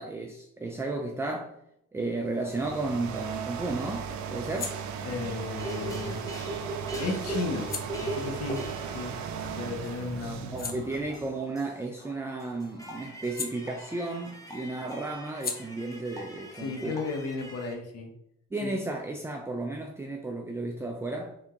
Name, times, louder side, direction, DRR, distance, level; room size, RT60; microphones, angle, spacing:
voice 1, 0.0-1.6 1.9-4.8 10.5-17.0 18.5-21.4, right 2 dB, 10° right, 0.3 m, -33 dB
sound 1, 2.2-11.4, right 6 dB, 70° right, 0.6 m, -37 dB
sound 2, 4.4-9.7 10.1-14.3 14.6-18.0, left 5 dB, 30° left, 0.6 m, -44 dB
voice 2, 5.0-6.3 7.0-7.7 8.0-8.6 8.9-9.2 9.5-10.8 16.5-18.1 18.6-18.8, left 3 dB, 55° left, 0.9 m, -34 dB
sound 3, 5.5-17.7, right 1 dB, 10° left, 1.1 m, -41 dB
3.5 x 2.9 x 3.6 m
cardioid pair, 90°, 30 cm